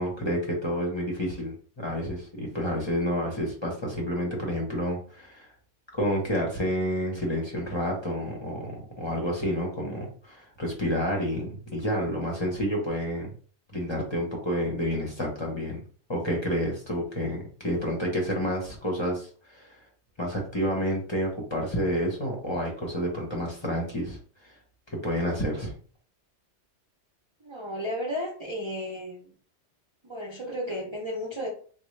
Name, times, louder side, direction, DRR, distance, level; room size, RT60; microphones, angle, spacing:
voice 1, 0.0-5.5 5.9-13.3 13.7-15.8 16.1-19.8 20.2-24.6 24.9-25.7, equal, 30° left, -2 dB, 0.7 m, -29 dB
voice 2, 27.4-29.3 30.0-31.5, equal, 35° right, -3 dB, 0.5 m, -33 dB
3.7 x 2.2 x 3.1 m, 0.43 s
omnidirectional pair, 1.2 m